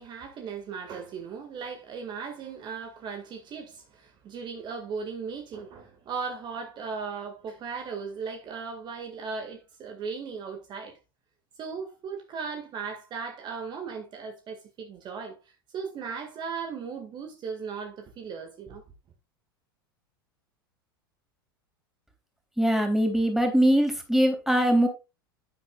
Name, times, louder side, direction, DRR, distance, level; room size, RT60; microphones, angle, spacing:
voice 1, 0.0-11.0 11.6-15.4 15.7-18.8, right 5 dB, 40° right, 2.0 m, -37 dB
voice 2, 22.6-24.9, equal, 5° right, 3.2 m, -22 dB
11.0 x 8.8 x 2.4 m
hypercardioid pair, 85°, 12 cm